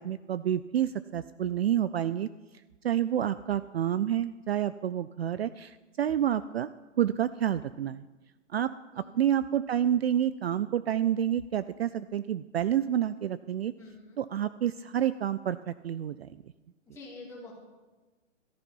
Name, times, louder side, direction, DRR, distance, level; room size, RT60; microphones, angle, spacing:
voice 1, 0.0-2.3 2.8-6.7 7.0-8.1 8.5-13.7 14.2-16.3, right 10 dB, 55° right, 15 dB, 0.5 m, -29 dB
voice 2, 13.8-14.2 16.9-17.5, left 3 dB, 5° left, -5 dB, 2.9 m, -47 dB
14.0 x 9.9 x 5.4 m, 1.2 s
hypercardioid pair, 165°, 38 cm